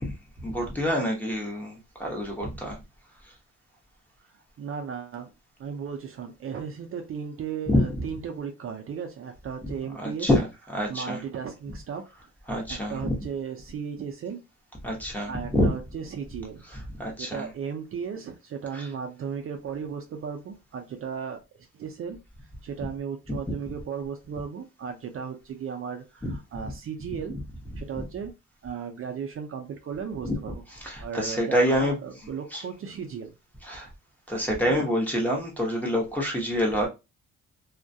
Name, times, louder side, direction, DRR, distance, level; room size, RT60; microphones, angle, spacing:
voice 1, 0.0-2.8 7.7-8.0 10.0-11.2 11.7-11.8 12.5-13.2 14.8-15.7 16.6-17.5 18.7-18.9 23.3-23.4 26.2-26.4 27.6-28.0 30.2-32.0 32.2-32.6 33.6-33.9 34.3-36.9, equal, 5° left, 0.8 m, -27 dB
voice 2, 4.2-5.3 5.6-10.3 10.9-12.0 12.7-14.4 15.3-16.6 17.2-22.2 22.6-27.4 27.8-28.3 28.6-30.6 31.0-33.3 34.7-34.9, right 7 dB, 45° right, 0.4 m, -35 dB
2.3 x 2.1 x 2.6 m
cardioid pair, 95°, 30 cm